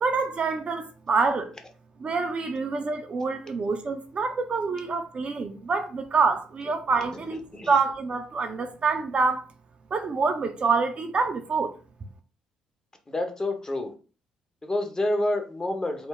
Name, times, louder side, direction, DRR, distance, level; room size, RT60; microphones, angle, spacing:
voice 1, 0.0-1.5 2.0-9.4 9.9-11.7, right 4 dB, 35° right, 0.4 m, -26 dB
voice 2, 13.1-13.9 14.6-16.1, left 1 dB, 20° left, 0.7 m, -28 dB
2.3 x 2.0 x 3.7 m
figure-of-eight pair, 45°, 3 cm